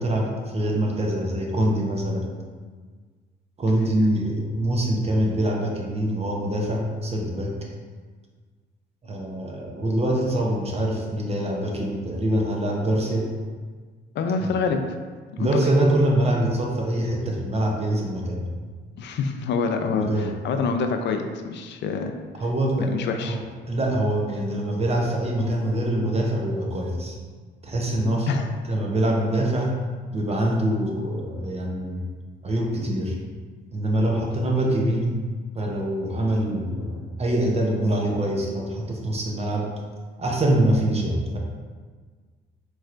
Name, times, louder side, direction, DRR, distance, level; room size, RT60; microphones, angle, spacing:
voice 1, 0.0-2.3 3.6-7.6 9.0-13.3 14.4-14.5 15.4-18.5 19.8-20.3 22.4-23.4 23.7-27.2 27.6-28.3 28.7-29.8 30.1-32.1 32.4-33.2 33.7-35.2 35.5-39.7 40.2-41.4, right 1 dB, 30° right, -1 dB, 0.7 m, -24 dB
voice 2, 14.2-14.8 15.4-15.5 19.0-22.1 22.8-23.4 28.3-28.5, left 5 dB, 65° left, 5 dB, 0.4 m, -26 dB
4.3 x 3.1 x 2.5 m, 1.5 s
cardioid pair, 90°, 20 cm